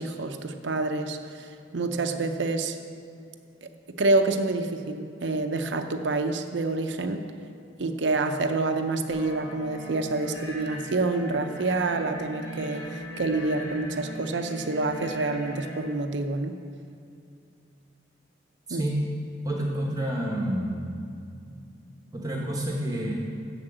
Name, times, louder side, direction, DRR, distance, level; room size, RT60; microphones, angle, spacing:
voice 1, 0.0-2.8 3.9-7.2 7.8-16.6 18.7-18.8, right 3 dB, 65° right, 7 dB, 0.6 m, -27 dB
sound 1, 9.1-15.7, left 1 dB, 75° left, 1.9 m, -38 dB
voice 2, 18.7-19.1 19.4-20.8 22.1-23.1, right 1 dB, 20° right, -1 dB, 1.0 m, -28 dB
7.4 x 6.9 x 7.9 m, 2.5 s
head